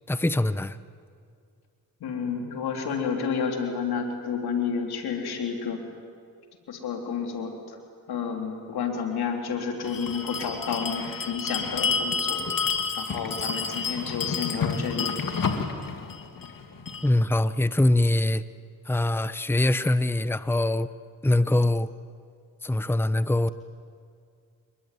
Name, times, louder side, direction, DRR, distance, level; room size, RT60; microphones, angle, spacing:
voice 1, 0.1-0.8 17.0-18.4 18.9-20.9 21.2-21.9 22.6-23.5, left 1 dB, 5° left, 14 dB, 0.9 m, -23 dB
voice 2, 2.0-5.8 6.7-7.8 8.1-12.4 13.0-15.1, left 6 dB, 90° left, 3 dB, 3.6 m, -30 dB
Bell, 9.8-17.1, left 5 dB, 60° left, 2.6 m, -30 dB
28.0 x 21.5 x 9.3 m, 2.3 s
cardioid pair, 55°, 37 cm